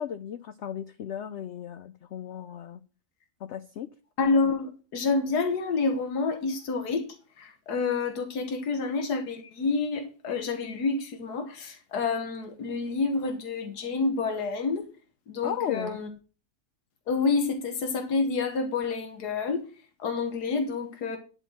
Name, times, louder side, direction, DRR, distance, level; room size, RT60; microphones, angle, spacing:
voice 1, 0.0-2.8 3.4-3.9 15.4-16.0, left 9 dB, 65° left, 0.7 m, -35 dB
voice 2, 4.2-7.1 7.4-14.9 15.3-16.1 17.1-19.6 20.0-21.2, left 4 dB, 90° left, 1.8 m, -28 dB
11.0 x 4.5 x 7.3 m
omnidirectional pair, 1.7 m